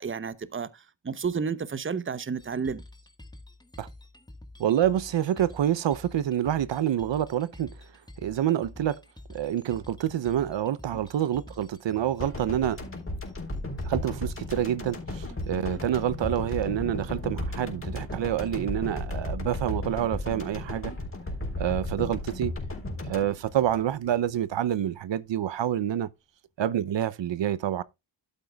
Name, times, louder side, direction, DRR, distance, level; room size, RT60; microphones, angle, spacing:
voice 1, 0.0-2.8, right 5 dB, 30° right, 0.8 m, -31 dB
sound 1, 2.4-18.6, left 1 dB, 10° left, 1.4 m, -47 dB
voice 2, 4.6-7.7 8.2-9.0 9.3-12.8 13.8-20.9 21.6-22.5 23.0-26.1 26.6-27.8, right 10 dB, 75° right, 0.7 m, -27 dB
sound 2, 12.2-24.4 24.7-24.8, left 1 dB, 30° left, 3.9 m, -35 dB
12.0 x 9.0 x 2.3 m
wide cardioid pair, 130°, 44 cm